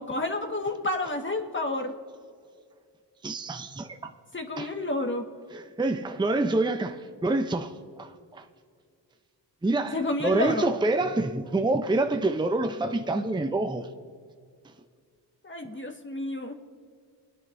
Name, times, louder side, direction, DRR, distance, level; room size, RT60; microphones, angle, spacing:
voice 1, 0.0-1.9 4.3-5.3 9.9-10.7 15.4-16.5, left 2 dB, 25° left, 1.7 m, -30 dB
voice 2, 3.2-4.0 4.6-4.7 5.5-7.0 7.2-8.4 9.6-10.0 10.2-13.9, right 2 dB, 10° right, 0.7 m, -27 dB
22.0 x 9.9 x 2.7 m
cardioid pair, 50°, 44 cm